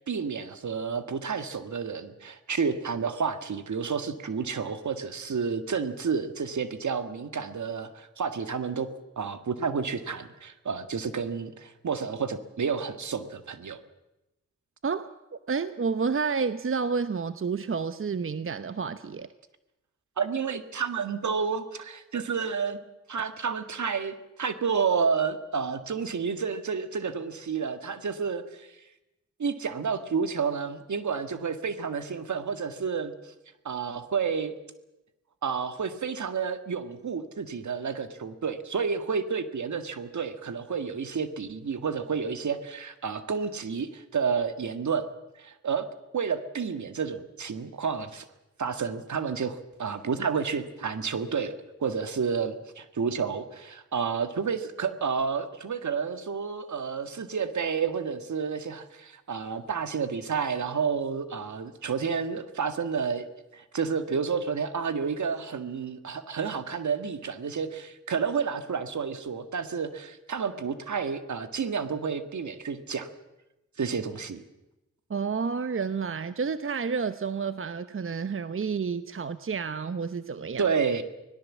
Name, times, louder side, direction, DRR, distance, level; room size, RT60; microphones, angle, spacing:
voice 1, 0.0-13.8 20.2-22.8 23.1-28.7 29.4-33.1 33.7-34.5 35.4-45.1 45.4-45.9 46.1-48.3 48.6-51.5 51.8-63.2 63.5-73.1 73.8-74.4 80.6-81.0, right 6 dB, 65° right, 10 dB, 1.8 m, -30 dB
voice 2, 14.8-19.3 75.1-80.7, right 5 dB, 40° right, 12 dB, 0.9 m, -30 dB
24.5 x 18.0 x 7.4 m, 0.96 s
supercardioid pair, 40°, 31 cm